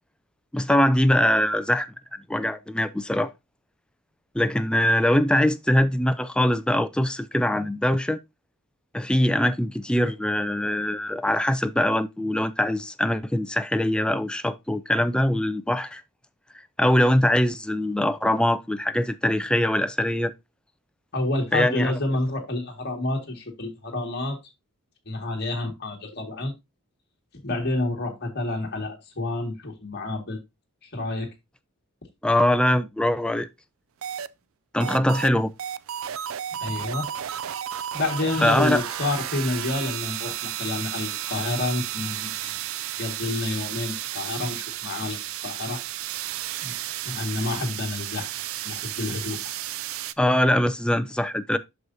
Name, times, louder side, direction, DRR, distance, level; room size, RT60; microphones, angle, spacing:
voice 1, 0.5-1.9 2.3-3.3 4.3-8.2 8.9-16.0 16.8-20.3 21.5-21.9 32.2-33.5 34.7-35.5 38.4-38.8 50.2-51.6, left 1 dB, 5° left, 0.4 m, -22 dB
voice 2, 21.1-24.4 25.1-26.5 27.4-30.4 30.8-31.3 36.6-37.1 37.9-42.6 43.0-45.8 46.6-46.7 47.1-48.3 48.6-49.4, left 2 dB, 50° left, 1.9 m, -29 dB
sound 1, 34.0-34.3 34.8-35.3 35.6-50.1, right 11 dB, 70° right, 0.4 m, -33 dB
7.9 x 6.4 x 2.7 m
head